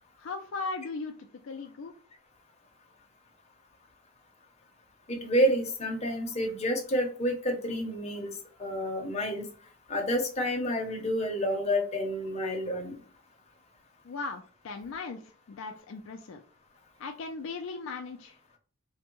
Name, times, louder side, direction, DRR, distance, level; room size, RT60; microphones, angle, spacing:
voice 1, 0.2-1.1 1.4-1.9 14.0-15.2 15.5-16.4 17.0-18.6, left 4 dB, 60° left, 3 dB, 0.3 m, -38 dB
voice 2, 5.1-8.3 8.6-9.5 9.9-13.0, equal, 30° left, 2 dB, 0.7 m, -29 dB
3.4 x 2.1 x 2.9 m, 0.41 s
head